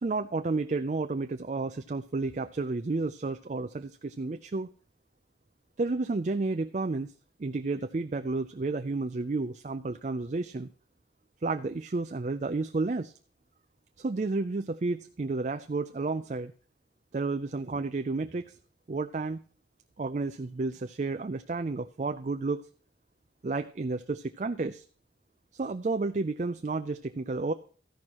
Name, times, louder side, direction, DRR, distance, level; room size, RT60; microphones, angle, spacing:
voice 1, 0.0-4.7 5.8-7.1 7.4-10.7 11.4-13.1 14.0-16.5 17.1-18.6 18.9-19.4 20.0-22.6 23.4-24.8 25.5-27.5, right 3 dB, 40° right, 9 dB, 0.4 m, -31 dB
13.5 x 11.0 x 3.0 m, 0.42 s
head